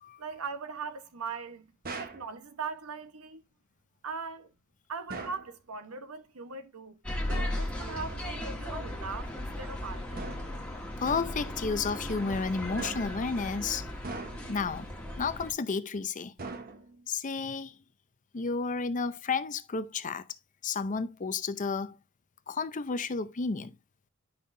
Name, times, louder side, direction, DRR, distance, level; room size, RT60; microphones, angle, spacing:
voice 1, 0.2-3.4 4.0-4.5 4.9-7.0 7.5-10.3, right 5 dB, 75° right, 1.0 m, -40 dB
sound 1, 1.8-2.3 5.1-5.5 7.3-7.7 10.2-10.6 11.1-11.5 12.8-13.3 14.0-14.6 16.4-17.1, right 3 dB, 45° right, 1.1 m, -41 dB
sound 2, 7.0-15.5, left 1 dB, 5° left, 1.5 m, -36 dB
voice 2, 11.0-13.9 14.5-14.9 15.2-16.3 17.1-17.8 18.3-20.3 20.6-22.0 22.5-23.7, left 4 dB, 35° left, 0.6 m, -32 dB
10.0 x 5.7 x 2.6 m
head